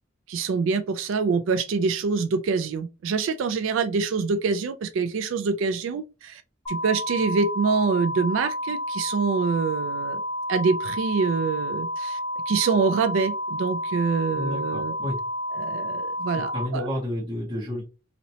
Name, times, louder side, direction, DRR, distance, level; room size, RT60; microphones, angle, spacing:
voice 1, 0.3-6.4 6.7-10.2 10.5-12.2 12.5-14.9 15.5-16.9, right 5 dB, 65° right, 0.3 m, -25 dB
sound 1, 6.7-16.7, left 1 dB, 15° left, 1.1 m, -30 dB
voice 2, 14.3-15.2 16.5-17.8, left 1 dB, 25° right, 1.4 m, -30 dB
2.9 x 2.8 x 2.8 m
head